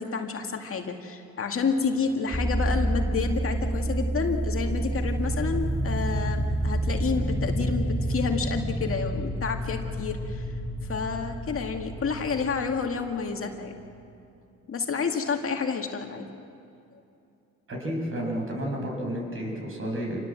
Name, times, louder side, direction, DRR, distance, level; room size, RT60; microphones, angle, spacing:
voice 1, 0.0-10.4 10.9-13.7 14.7-16.3, left 5 dB, 45° left, 3 dB, 2.2 m, -29 dB
sound 1, 2.3-13.7, right 1 dB, 10° left, 2.5 m, -29 dB
voice 2, 17.7-20.3, equal, 45° right, 0 dB, 7.5 m, -31 dB
27.5 x 19.5 x 7.7 m, 2.6 s
cardioid pair, 90°, 30 cm